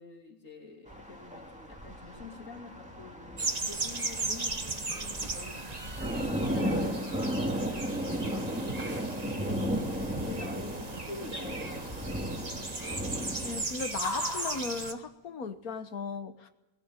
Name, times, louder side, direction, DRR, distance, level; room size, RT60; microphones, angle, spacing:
voice 1, 0.0-5.6 6.0-9.7 10.2-12.4, left 4 dB, 60° left, 2 dB, 3.4 m, -47 dB
sound 1, 0.9-13.6, equal, 5° right, 2.3 m, -35 dB
sound 2, 1.0-15.8, left 3 dB, 40° left, 2.7 m, -48 dB
sound 3, 3.4-14.9, right 3 dB, 25° right, 1.4 m, -37 dB
voice 2, 12.8-16.5, left 5 dB, 75° left, 9 dB, 1.7 m, -37 dB
20.0 x 17.5 x 8.9 m, 0.99 s
omnidirectional pair, 1.6 m